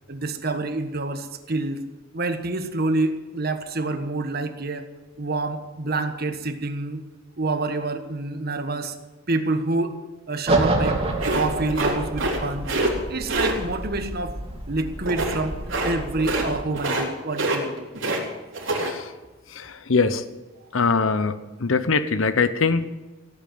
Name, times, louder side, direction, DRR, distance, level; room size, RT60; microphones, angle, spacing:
voice 1, 0.1-1.8 2.1-4.9 5.2-7.0 7.4-8.9 9.3-10.0 10.3-11.0 11.3-12.7 13.1-14.4 14.7-17.9, right 2 dB, 55° right, 8 dB, 1.4 m, -27 dB
sound 1, 10.5-16.6, right 2 dB, 30° right, 2.7 m, -28 dB
sound 2, 11.2-12.4 12.6-12.9 13.3-13.5 15.1-15.4 15.7-15.9 16.2-16.5 16.7-17.1 17.3-18.2 18.5-18.9, right 2 dB, 70° right, 3.9 m, -25 dB
voice 2, 18.7-19.1 19.5-20.2 20.7-22.9, left 4 dB, 90° left, 12 dB, 0.9 m, -22 dB
16.5 x 8.7 x 9.4 m, 1.1 s
head